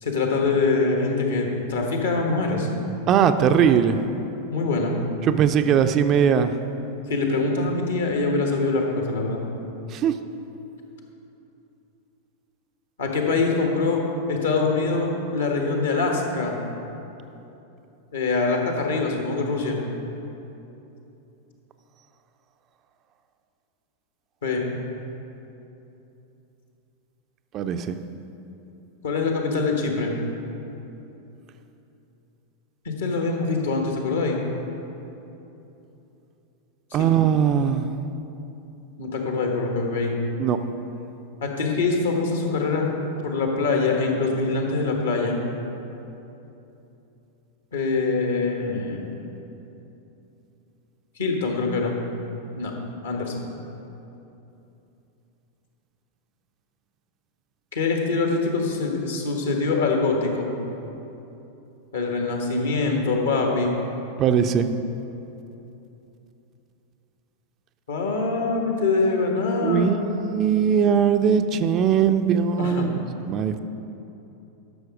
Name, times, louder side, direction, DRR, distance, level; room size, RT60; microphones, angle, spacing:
voice 1, 0.0-2.7 4.5-5.0 7.1-9.4 13.0-14.0 14.3-16.5 18.1-19.8 24.4-24.7 29.0-30.1 32.8-34.4 36.9-37.1 39.0-40.1 41.4-42.9 43.2-45.4 47.7-49.0 51.2-52.0 52.6-52.7 53.0-53.5 57.7-60.5 61.9-63.8 67.9-70.0 72.6-72.9, left 3 dB, 65° left, 1 dB, 1.5 m, -24 dB
voice 2, 3.1-4.0 5.2-6.5 9.9-10.1 27.5-28.0 36.9-37.9 40.4-40.6 64.2-64.7 69.6-72.9 73.3-73.6, right 8 dB, 35° right, 9 dB, 0.4 m, -20 dB
12.0 x 6.3 x 4.9 m, 2.9 s
figure-of-eight pair, 90°, 0 cm